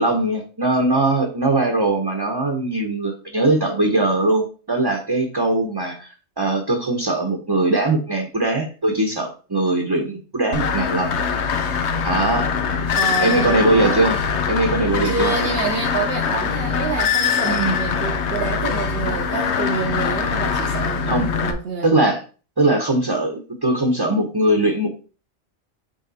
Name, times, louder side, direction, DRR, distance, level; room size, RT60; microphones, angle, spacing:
voice 1, 0.0-6.1 6.4-11.2 12.0-12.5 13.2-14.2 14.5-15.3 17.4-17.8 21.1-21.3 21.8-22.2 22.6-24.9, right 2 dB, 20° right, 2 dB, 0.8 m, -20 dB
sound 1, 10.5-21.5, left 6 dB, 70° left, 1.0 m, -23 dB
voice 2, 12.9-14.1 15.0-22.0, right 4 dB, 55° right, 2 dB, 1.0 m, -27 dB
6.5 x 3.6 x 4.1 m, 0.36 s
omnidirectional pair, 1.2 m